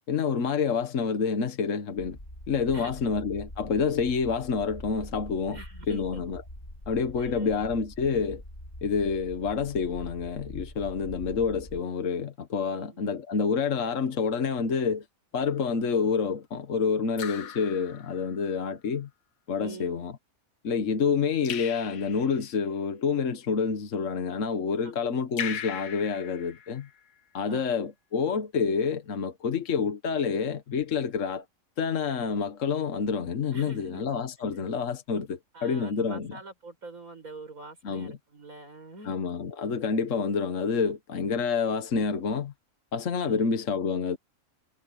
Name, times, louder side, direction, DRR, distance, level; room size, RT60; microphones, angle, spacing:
voice 1, 0.1-2.2 2.5-5.6 5.9-6.4 6.9-8.4 8.8-15.0 15.3-19.1 19.5-20.1 20.6-26.9 27.3-31.4 31.8-36.4 37.8-38.2 39.0-42.5 42.9-44.2, left 5 dB, 65° left, 1.5 m, -28 dB
Deep Space Ambiance, 2.0-11.8, left 1 dB, 30° left, 3.6 m, -44 dB
voice 2, 2.7-3.1 5.5-6.2 7.2-7.7 12.7-13.0 19.6-20.0 24.8-25.1 27.5-27.8 33.5-34.1 35.5-39.2 43.2-43.5, right 3 dB, 85° right, 6.0 m, -45 dB
Raindrop / Drip, 15.5-15.8 17.2-18.5 21.5-22.6 25.4-27.1, left 9 dB, 85° left, 1.4 m, -39 dB
omnidirectional pair, 1.4 m